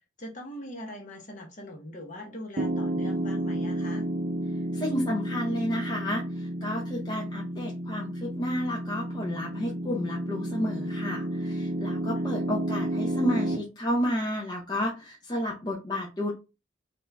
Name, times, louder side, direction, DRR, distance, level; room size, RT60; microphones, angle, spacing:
voice 1, 0.2-4.1 12.2-12.3, left 1 dB, 40° left, 0 dB, 1.2 m, -41 dB
Piano, 2.6-13.6, right 1 dB, 45° right, 0.5 m, -31 dB
voice 2, 4.7-16.3, equal, 25° left, -2 dB, 0.7 m, -31 dB
4.2 x 2.5 x 3.4 m, 0.28 s
head